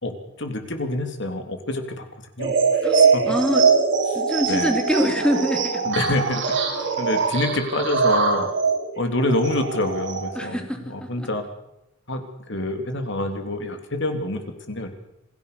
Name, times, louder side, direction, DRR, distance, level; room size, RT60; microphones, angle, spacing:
voice 1, 0.0-2.0 2.4-2.5 2.9-3.2 4.1-4.2 4.5-4.7 5.8-6.4 7.0-8.5 9.0-11.4 12.1-12.2 12.5-14.4 14.7-14.9, left 1 dB, 60° left, 6 dB, 3.3 m, -26 dB
sound 1, 2.4-10.5, right 5 dB, 65° right, 5.8 m, -22 dB
voice 2, 2.8-3.7 4.1-6.0 10.3-11.3, equal, 5° left, 4 dB, 2.9 m, -25 dB
27.5 x 16.5 x 6.9 m, 0.87 s
head